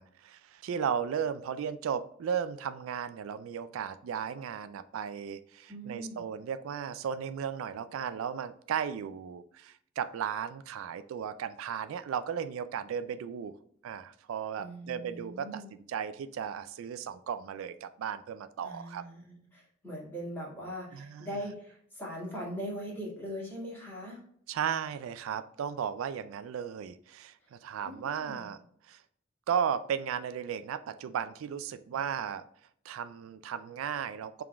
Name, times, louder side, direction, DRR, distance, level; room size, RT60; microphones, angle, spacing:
voice 1, 0.0-13.6 13.8-15.6 15.9-19.0 20.9-21.3 24.5-28.6 28.8-29.0 29.5-32.4 32.8-34.4, right 7 dB, 80° right, 12 dB, 0.3 m, -35 dB
voice 2, 5.7-6.2 14.6-15.7 18.6-24.3 27.4-27.5 27.8-28.5 31.9-32.0, equal, 10° left, -5 dB, 1.8 m, -41 dB
5.0 x 3.6 x 2.2 m, 0.64 s
head